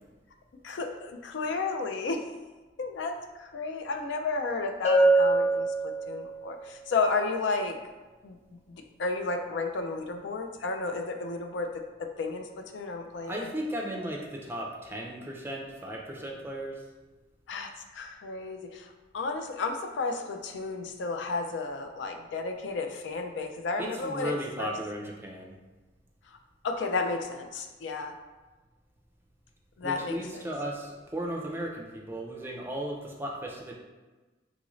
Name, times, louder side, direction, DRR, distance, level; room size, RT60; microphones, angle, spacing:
voice 1, 0.6-2.3 2.8-7.8 8.2-8.4 8.7-13.4 17.5-24.7 26.3-26.4 26.6-28.1 29.8-30.4, left 3 dB, 75° left, 5 dB, 0.4 m, -33 dB
Bell, 4.8-6.5, right 2 dB, 35° left, 0.6 m, -23 dB
voice 2, 13.2-16.8 23.8-25.5 29.8-33.7, right 1 dB, 10° right, -1 dB, 0.4 m, -36 dB
3.9 x 2.5 x 3.0 m, 1.2 s
head